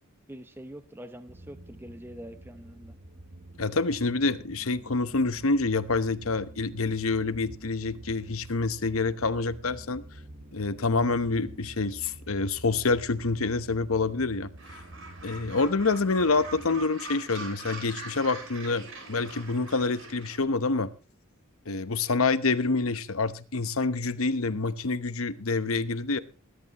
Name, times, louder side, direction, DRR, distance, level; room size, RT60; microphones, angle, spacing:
voice 1, 0.3-3.0, equal, 10° right, 10 dB, 0.8 m, -44 dB
sound 1, 1.3-16.9, right 1 dB, 45° right, 1.0 m, -48 dB
voice 2, 3.6-10.0 10.5-14.5 15.2-20.9 21.7-26.2, left 3 dB, 90° left, 13 dB, 1.0 m, -27 dB
Gull seagull, 14.6-20.4, right 3 dB, 65° right, 5.8 m, -43 dB
20.5 x 11.5 x 3.0 m, 0.33 s
head